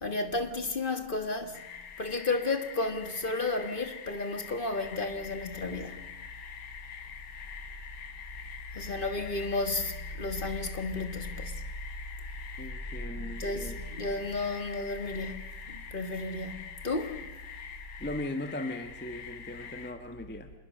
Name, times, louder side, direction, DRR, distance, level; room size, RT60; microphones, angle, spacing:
voice 1, 0.0-1.6 2.0-6.0 8.7-11.5 13.2-15.3 15.7-16.5 16.8-17.2, left 3 dB, 30° left, 1.5 m, -32 dB
sound 1, 1.5-19.9, left 7 dB, 75° left, 2.3 m, -45 dB
voice 2, 12.6-13.8 18.0-20.5, left 1 dB, 10° left, 0.8 m, -38 dB
26.5 x 21.0 x 6.5 m
omnidirectional pair, 2.2 m